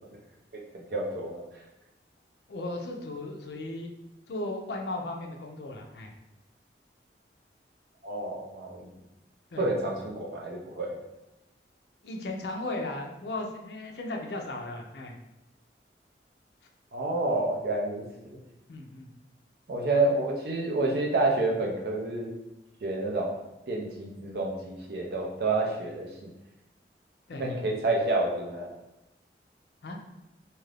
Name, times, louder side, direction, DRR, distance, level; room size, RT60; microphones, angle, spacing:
voice 1, 0.7-1.4 8.0-8.9 9.6-11.0 16.9-18.4 19.7-22.3 22.8-23.4 23.7-26.3 27.4-28.7, right 2 dB, 60° right, -1 dB, 0.6 m, -29 dB
voice 2, 2.5-3.9 4.3-6.1 9.5-9.6 12.0-15.1 18.7-19.1 27.3-27.4 29.8-30.0, left 2 dB, 70° left, 2 dB, 0.4 m, -36 dB
2.7 x 2.4 x 3.3 m, 0.94 s
head